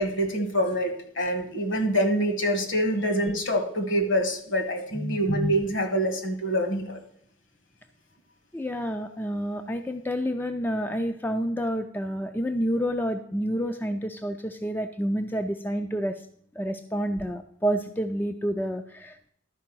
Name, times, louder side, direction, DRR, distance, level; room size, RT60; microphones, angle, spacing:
voice 1, 0.0-7.0, equal, 60° left, 6 dB, 1.5 m, -25 dB
voice 2, 8.5-16.3 16.6-19.3, equal, 10° left, 6 dB, 0.3 m, -29 dB
12.0 x 4.7 x 6.0 m, 0.67 s
head